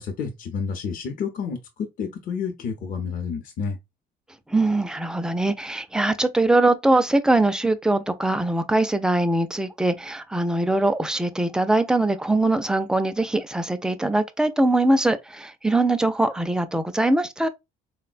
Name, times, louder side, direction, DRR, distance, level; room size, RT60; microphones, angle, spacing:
voice 1, 0.0-3.8, left 6 dB, 55° left, 0.7 m, -30 dB
voice 2, 4.5-17.5, right 2 dB, 5° right, 0.3 m, -22 dB
3.8 x 2.1 x 2.4 m
cardioid pair, 110°, 17 cm